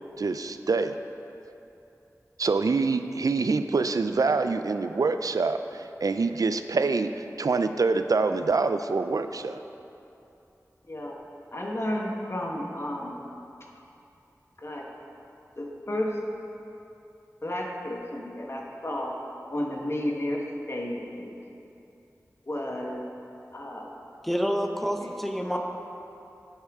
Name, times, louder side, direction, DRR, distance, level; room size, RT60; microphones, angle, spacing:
voice 1, 0.2-1.0 2.4-9.6, right 4 dB, 75° right, 9 dB, 0.4 m, -25 dB
voice 2, 10.9-11.2 11.5-13.2 14.6-14.9 15.6-16.2 17.4-19.2 19.5-21.4 22.5-23.0 23.5-23.9 25.0-25.1 25.5-25.6, left 1 dB, 45° left, -1 dB, 1.2 m, -32 dB
voice 3, 24.2-25.6, equal, ahead, 3 dB, 0.8 m, -28 dB
11.0 x 8.5 x 3.6 m, 2.8 s
wide cardioid pair, 65°, 6 cm